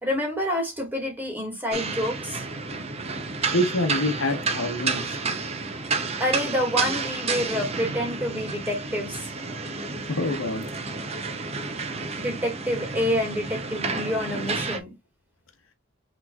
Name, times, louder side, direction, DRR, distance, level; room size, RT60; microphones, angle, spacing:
voice 1, 0.0-2.5 6.2-9.3 12.2-14.9, equal, 10° right, 1.9 m, -28 dB
sound 1, 1.7-14.8, right 4 dB, 30° right, 0.6 m, -31 dB
voice 2, 3.5-5.2 10.1-10.7, left 1 dB, 80° left, 0.9 m, -26 dB
6.0 x 3.1 x 2.3 m
head